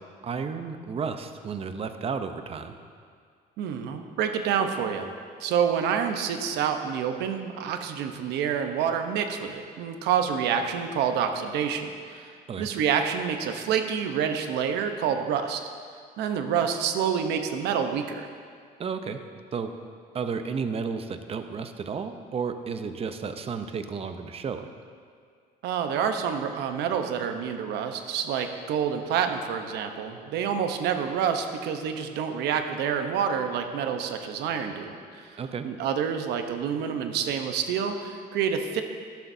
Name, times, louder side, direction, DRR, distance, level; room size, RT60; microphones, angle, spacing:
voice 1, 0.2-2.7 12.5-12.7 18.8-19.2 19.5-19.7 20.1-24.7 35.4-35.7, right 5 dB, 35° right, 8 dB, 0.7 m, -32 dB
voice 2, 3.6-5.1 5.4-12.3 12.6-15.6 16.2-18.3 25.6-35.3 35.6-38.8, right 7 dB, 85° right, 6 dB, 0.9 m, -28 dB
13.0 x 11.5 x 2.7 m, 2.1 s
cardioid pair, 110°, 17 cm